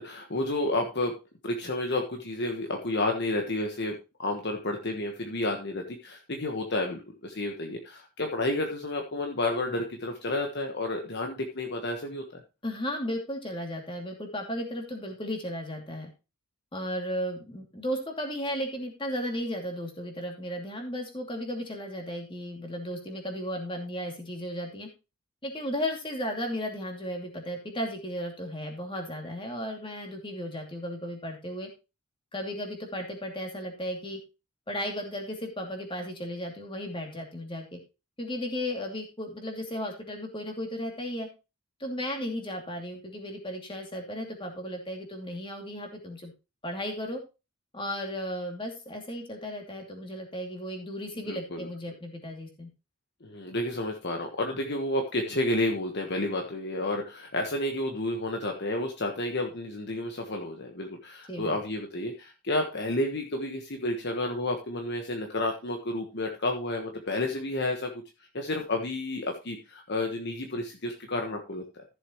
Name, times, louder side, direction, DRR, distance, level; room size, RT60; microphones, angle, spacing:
voice 1, 0.0-12.2 51.3-51.7 53.2-68.0 68.3-71.8, left 1 dB, 50° left, 3 dB, 1.3 m, -31 dB
voice 2, 12.6-16.1 16.7-24.9 25.4-31.7 32.3-34.2 34.7-37.8 38.2-41.3 41.8-46.3 46.6-47.2 47.7-52.7 61.3-61.6, equal, 25° left, 2 dB, 2.6 m, -35 dB
14.5 x 7.1 x 3.0 m, 0.28 s
head